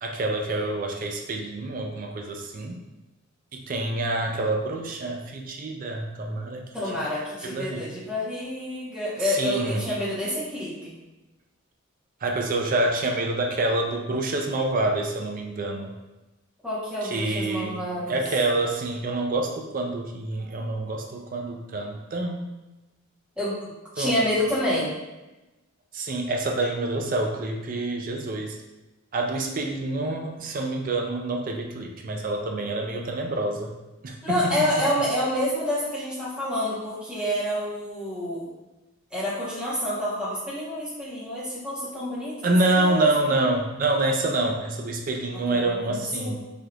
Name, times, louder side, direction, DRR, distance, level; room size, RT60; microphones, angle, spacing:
voice 1, 0.0-2.8 3.5-6.7 7.4-7.9 9.2-9.8 12.2-15.9 17.0-17.8 18.1-22.5 24.0-24.2 25.9-28.6 29.1-33.7 34.0-34.4 42.4-46.4, right 2 dB, 40° right, 2 dB, 0.4 m, -27 dB
voice 2, 6.7-11.0 16.6-18.2 23.4-23.6 23.9-24.9 34.2-38.5 39.1-43.3 45.5-46.4, left 1 dB, 5° right, -10 dB, 1.1 m, -28 dB
3.3 x 2.8 x 2.4 m, 1.0 s
head